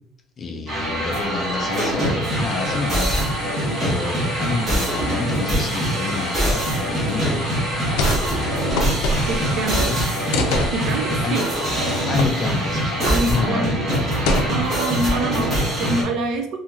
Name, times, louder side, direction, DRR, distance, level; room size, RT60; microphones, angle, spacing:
voice 1, 0.4-3.5 3.8-7.4 9.6-10.0 11.2-11.4 12.1-13.8, left 3 dB, 25° left, 3 dB, 0.3 m, -28 dB
sound 1, 0.7-16.0, right 1 dB, 25° right, 0.9 m, -23 dB
sound 2, 2.2-12.0, left 2 dB, 40° left, 0.8 m, -39 dB
sound 3, 7.9-8.3 8.5-9.6 10.3-10.7 12.2-12.3 12.6-12.8 13.3-13.5 14.2-14.8 15.4-15.9, left 2 dB, 85° left, 0.4 m, -24 dB
voice 2, 9.3-9.9 10.7-11.5 13.1-13.9 14.5-16.6, right 2 dB, 45° right, 5 dB, 0.4 m, -26 dB
2.7 x 2.7 x 2.4 m, 0.72 s
cardioid pair, 180°, 0 cm